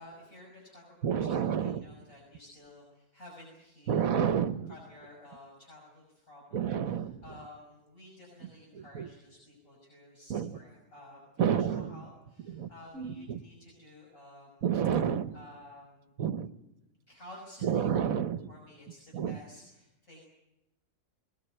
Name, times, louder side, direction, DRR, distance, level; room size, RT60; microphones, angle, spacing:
voice 1, 0.0-4.1 4.7-14.7 15.3-16.1 17.1-17.9 18.5-20.2, left 1 dB, 60° left, -2 dB, 6.5 m, -53 dB
voice 2, 1.0-1.8 3.9-4.7 6.5-7.2 8.9-9.1 10.3-10.5 11.4-11.9 12.5-12.7 12.9-13.4 14.6-15.3 16.2-16.5 17.6-18.5 19.1-19.4, right 8 dB, 65° right, 11 dB, 1.5 m, -29 dB
21.5 x 21.0 x 9.0 m, 0.92 s
omnidirectional pair, 1.6 m